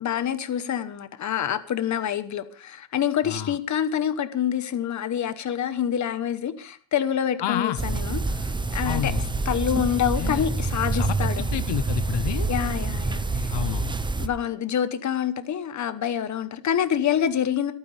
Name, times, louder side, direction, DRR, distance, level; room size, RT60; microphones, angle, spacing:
voice 1, 0.0-9.1 9.4-11.4 12.5-13.5 14.2-17.7, left 9 dB, 35° left, 1.1 m, -27 dB
voice 2, 3.2-3.6 7.4-7.8 8.8-9.3 10.2-10.5 10.9-12.5 13.5-13.9, left 11 dB, 60° left, 0.9 m, -29 dB
sound 1, 7.8-14.3, right 3 dB, 10° right, 0.6 m, -27 dB
26.0 x 9.5 x 3.3 m
cardioid pair, 165°, 48 cm